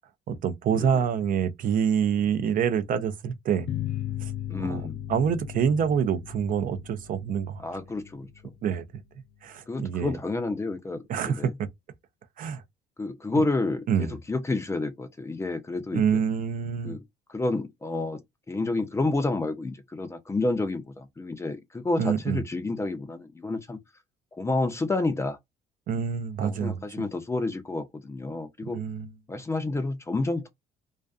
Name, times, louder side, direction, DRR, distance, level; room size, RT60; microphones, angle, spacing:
voice 1, 0.3-3.7 4.2-4.3 4.6-4.8 5.1-7.6 8.6-9.0 9.4-10.2 11.1-11.7 12.4-12.6 13.9-14.2 15.9-17.0 22.0-22.4 25.9-27.0 28.7-29.1, right 7 dB, 55° right, 0.5 m, -26 dB
sound 1, 3.7-8.8, left 12 dB, 70° left, 0.5 m, -36 dB
voice 2, 4.5-5.0 7.6-8.3 9.7-11.5 13.0-16.2 16.8-17.0 17.3-18.2 18.5-23.8 24.3-25.4 26.4-28.8 29.3-30.5, left 2 dB, 15° left, 0.5 m, -29 dB
2.4 x 2.4 x 2.3 m
cardioid pair, 110°, 17 cm